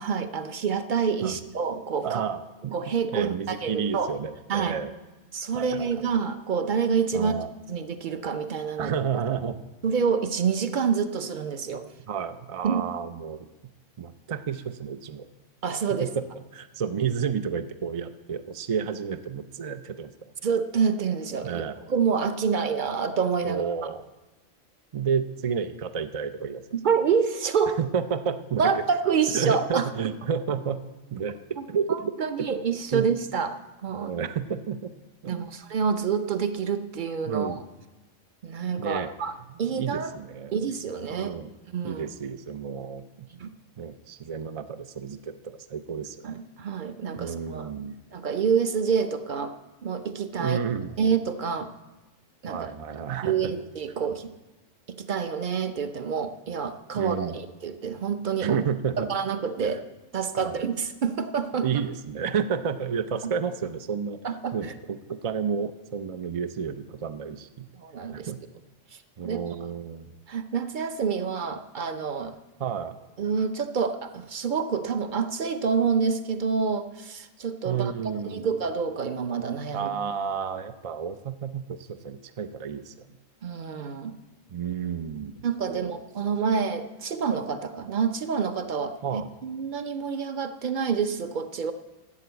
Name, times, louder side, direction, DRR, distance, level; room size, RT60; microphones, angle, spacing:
voice 1, 0.0-2.2 2.7-4.1 4.5-4.8 5.3-7.4 7.7-8.9 9.8-11.8 12.6-12.8 15.6-16.1 20.4-23.6 26.7-27.8 28.6-29.9 31.9-34.1 35.2-37.6 38.4-39.3 39.6-40.1 40.5-41.3 41.7-42.0 43.3-43.5 46.2-47.7 48.1-49.6 49.8-50.6 51.0-51.7 52.4-52.7 53.2-54.3 54.9-58.6 59.0-59.8 60.1-61.7 63.2-63.3 64.2-64.7 67.7-68.3 69.2-69.4 70.3-72.4 73.2-79.9 83.4-84.2 85.4-91.7, right 6 dB, 45° right, 10 dB, 0.7 m, -27 dB
voice 2, 2.0-2.7 3.1-4.9 5.5-5.9 7.1-7.5 8.8-9.6 12.1-13.5 14.0-15.3 16.0-16.1 16.5-20.3 21.4-21.8 23.4-24.1 24.9-26.6 27.8-28.8 29.3-30.8 31.1-32.5 32.9-33.1 33.9-34.9 35.2-35.5 37.3-37.6 38.8-39.1 39.8-40.5 41.1-41.5 41.8-43.3 43.8-46.3 47.2-47.9 50.4-50.9 52.5-53.5 57.0-57.4 58.4-59.1 59.6-59.8 60.4-60.6 61.6-64.2 64.5-67.7 68.1-68.4 69.2-70.2 72.6-73.0 77.6-78.5 79.7-83.1 84.5-85.4 85.7-85.9 89.0-89.3, right 7 dB, 65° right, 9 dB, 0.3 m, -31 dB
12.5 x 7.6 x 8.1 m, 1.1 s
omnidirectional pair, 1.3 m